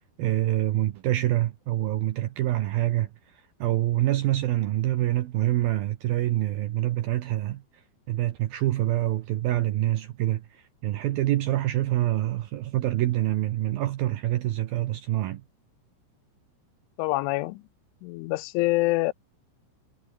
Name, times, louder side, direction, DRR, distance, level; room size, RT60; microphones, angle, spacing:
voice 1, 0.2-7.6 8.1-15.4, right 14 dB, 80° right, 2.2 m, -26 dB
voice 2, 17.0-17.6 18.0-19.1, left 20 dB, 90° left, 3.1 m, -25 dB
omnidirectional pair, 5.5 m